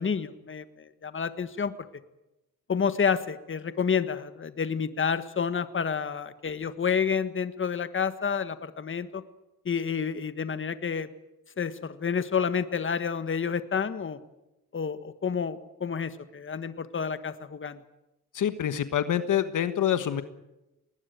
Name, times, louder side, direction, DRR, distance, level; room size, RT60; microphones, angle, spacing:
voice 1, 0.0-1.7 2.7-9.2 9.6-11.1 11.6-14.2 14.7-17.8, left 6 dB, 40° left, 12 dB, 1.5 m, -29 dB
voice 2, 18.3-20.2, left 10 dB, 70° left, 11 dB, 1.4 m, -26 dB
20.0 x 19.5 x 9.3 m, 0.95 s
cardioid pair, 80°, 32 cm